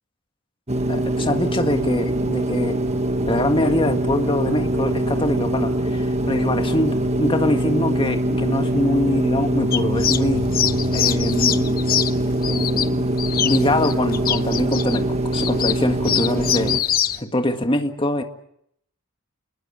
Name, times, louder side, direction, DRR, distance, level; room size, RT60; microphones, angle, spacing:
sound 1, 0.7-16.8, right 1 dB, 30° right, 1.6 m, -23 dB
voice 1, 0.9-2.8 3.3-10.5 10.9-11.8 12.4-13.1 13.4-15.1 15.3-16.8 17.2-18.2, left 1 dB, 25° left, 6 dB, 1.9 m, -24 dB
sound 2, 9.7-17.2, left 9 dB, 40° left, 0.9 m, -25 dB
29.0 x 20.5 x 7.6 m, 0.72 s
head